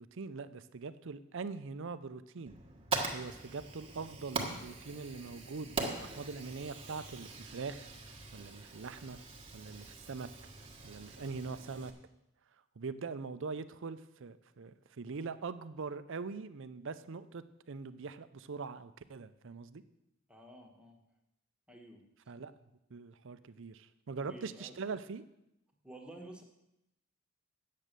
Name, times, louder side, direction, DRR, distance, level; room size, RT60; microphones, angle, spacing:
voice 1, 0.0-2.5 3.1-7.9 8.3-9.2 9.5-10.3 10.8-11.9 12.8-19.8 22.3-22.5 22.9-25.2, right 4 dB, 65° right, 13 dB, 0.6 m, -42 dB
Fire, 2.5-11.9, right 3 dB, 25° right, 1.4 m, -42 dB
voice 2, 20.3-21.0 21.7-22.0 24.2-24.7 25.8-26.4, right 1 dB, 5° right, 1 dB, 1.4 m, -51 dB
9.2 x 7.5 x 6.7 m, 0.85 s
head